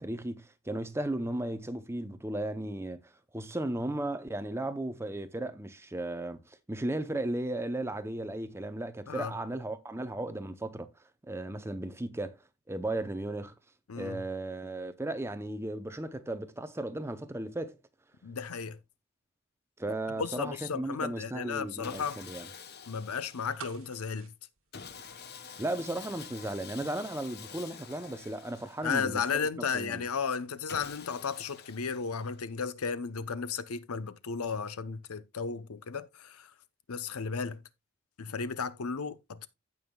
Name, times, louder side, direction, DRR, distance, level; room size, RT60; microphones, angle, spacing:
voice 1, 0.0-10.9 11.3-12.4 12.7-13.5 14.0-17.8 19.8-22.5 25.6-29.5 29.7-30.0, right 1 dB, 10° right, 0.6 m, -35 dB
voice 2, 13.9-14.2 18.2-18.8 20.2-22.2 22.9-24.3 28.8-36.5 36.9-37.6 38.2-39.5, left 5 dB, 90° left, 0.7 m, -34 dB
Sawing, 21.8-23.9 24.7-29.3 30.7-32.5, left 6 dB, 45° left, 0.9 m, -48 dB
sound 1, 23.6-25.6 25.9-26.0, right 6 dB, 65° right, 1.2 m, -48 dB
15.5 x 5.6 x 2.3 m
head